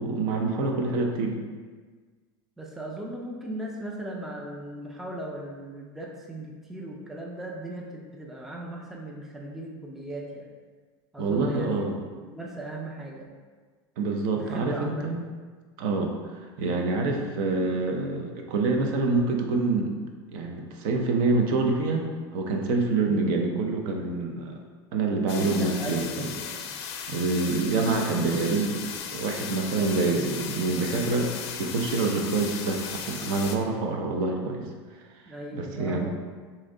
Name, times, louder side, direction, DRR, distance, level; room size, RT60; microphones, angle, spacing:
voice 1, 0.0-1.4 11.2-12.0 14.0-15.2 15.8-16.2 16.6-19.9 20.3-22.0 22.3-24.5 24.9-26.3 27.1-28.8 29.1-31.3 31.6-34.7 35.5-36.1, right 3 dB, 60° right, 2 dB, 0.6 m, -26 dB
voice 2, 2.6-10.5 11.1-13.3 14.3-15.2 25.4-26.7 35.3-36.1, right 1 dB, ahead, -1 dB, 0.4 m, -38 dB
sound 1, 25.3-33.6, left 7 dB, 75° left, 0.4 m, -36 dB
3.1 x 2.7 x 3.7 m, 1.5 s
supercardioid pair, 125°, 14 cm